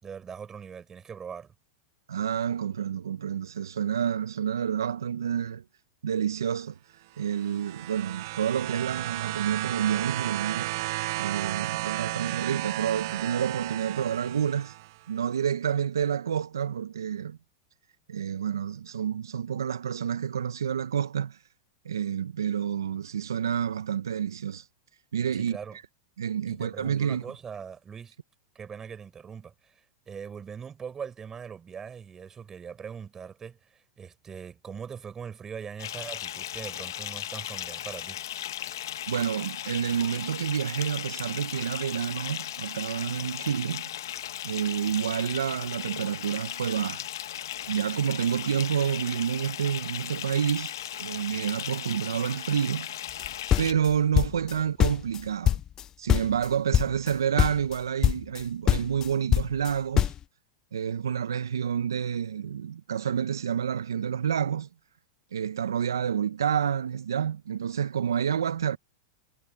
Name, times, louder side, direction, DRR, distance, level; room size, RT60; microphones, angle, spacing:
voice 1, 0.0-1.5 25.3-25.8 26.5-28.2 28.5-38.2 54.5-54.6, right 7 dB, 25° right, 5.7 m, -41 dB
voice 2, 2.1-5.6 6.0-6.8 7.2-10.8 11.2-14.7 15.1-17.4 18.1-21.4 21.8-24.7 25.1-25.6 26.2-27.2 39.1-43.9 44.4-47.0 47.7-52.9 53.6-55.6 56.0-60.1 60.7-64.7 65.3-68.8, right 8 dB, 85° right, 0.8 m, -29 dB
sound 1, 7.2-15.0 16.0-16.1, right 19 dB, 60° right, 0.4 m, -33 dB
Bathtub (filling or washing) / Fill (with liquid), 35.8-53.7, left 12 dB, 75° left, 1.2 m, -37 dB
sound 2, 53.2-54.6 54.8-55.8 56.1-56.5 56.7-57.1 57.4-57.8 58.0-58.4 58.7-60.2, left 10 dB, 30° left, 0.5 m, -23 dB
hypercardioid pair, 105°, 2 cm